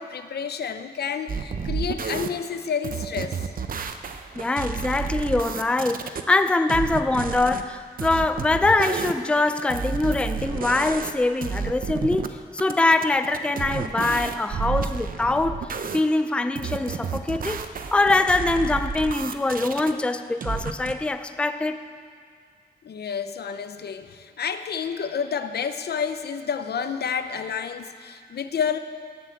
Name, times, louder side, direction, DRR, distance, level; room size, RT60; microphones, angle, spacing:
voice 1, 0.0-3.4 22.8-28.8, left 6 dB, 75° left, 10 dB, 0.7 m, -30 dB
sound 1, 1.3-2.3 2.8-6.2 6.7-7.6 8.0-11.2 11.4-12.3 12.6-16.0 16.5-19.9 20.4-20.9, right 6 dB, 55° right, 0.7 m, -31 dB
voice 2, 4.4-17.6 17.9-21.9, left 2 dB, 5° left, 9 dB, 0.4 m, -23 dB
18.0 x 7.7 x 7.8 m, 2.1 s
wide cardioid pair, 170°, 17 cm